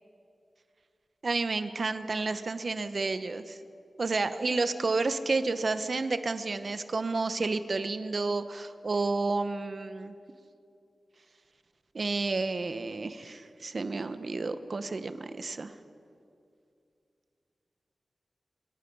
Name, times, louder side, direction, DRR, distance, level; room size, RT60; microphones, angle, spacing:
voice 1, 1.2-3.6 4.0-10.2 11.9-15.7, right 3 dB, 45° right, 10 dB, 1.0 m, -31 dB
25.5 x 21.5 x 5.5 m, 2.5 s
wide cardioid pair, 135°, 0 cm